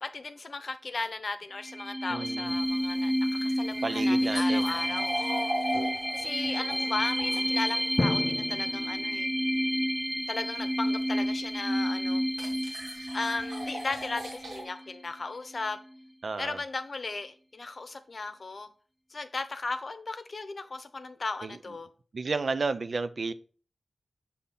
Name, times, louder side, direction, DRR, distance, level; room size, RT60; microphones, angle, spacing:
voice 1, 0.0-5.5 6.1-9.3 10.3-12.2 13.1-15.8 16.4-18.7 19.1-21.9, left 3 dB, 60° left, 0.7 m, -36 dB
sound 1, 1.6-15.0, equal, 5° right, 0.6 m, -30 dB
voice 2, 2.1-2.5 3.8-5.0 16.2-16.6 21.4-21.6 22.1-23.3, right 4 dB, 70° right, 0.4 m, -32 dB
sound 2, 2.5-8.1 11.2-11.3 12.3-14.6, right 1 dB, 85° right, 1.4 m, -38 dB
Drum, 8.0-9.9, left 2 dB, 35° left, 0.3 m, -33 dB
6.6 x 2.8 x 5.5 m
cardioid pair, 50°, 0 cm